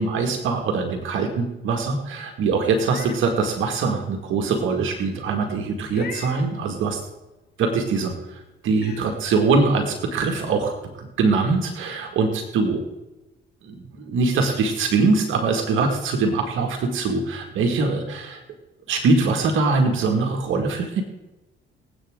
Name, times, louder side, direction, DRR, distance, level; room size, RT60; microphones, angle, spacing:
voice 1, 0.0-7.0 7.6-12.8 13.6-18.4 18.9-21.0, right 4 dB, 85° right, 3 dB, 2.0 m, -23 dB
Meow, 2.7-3.2 3.7-3.8 5.9-6.5 8.1-8.2 8.7-9.0, left 6 dB, 55° left, 2.2 m, -39 dB
25.0 x 8.5 x 3.7 m, 1.0 s
cardioid pair, 90°, 20 cm